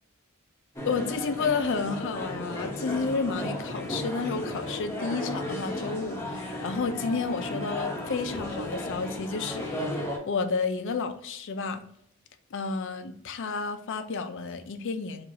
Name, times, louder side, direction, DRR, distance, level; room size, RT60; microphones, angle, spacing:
sound 1, 0.8-10.2, left 1 dB, 10° left, 0.8 m, -34 dB
voice 1, 0.9-11.8 12.5-15.2, left 4 dB, 60° left, 8 dB, 0.5 m, -31 dB
4.8 x 2.5 x 2.6 m, 0.71 s
head